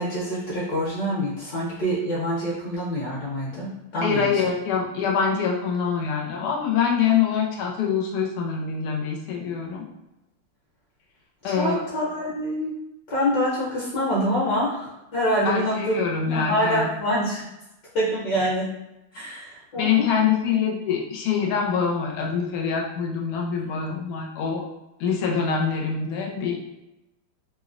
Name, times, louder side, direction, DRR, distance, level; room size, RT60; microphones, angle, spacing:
voice 1, 0.0-4.4 11.4-12.7 13.1-16.0 16.2-17.5 17.9-18.7 19.1-20.1, equal, 60° left, -6 dB, 1.3 m, -26 dB
voice 2, 4.0-9.8 11.4-11.8 15.4-16.9 19.2-19.3 19.7-24.6 25.0-26.6, left 6 dB, 85° left, 0 dB, 1.5 m, -25 dB
3.5 x 2.0 x 2.4 m, 0.95 s
omnidirectional pair, 2.4 m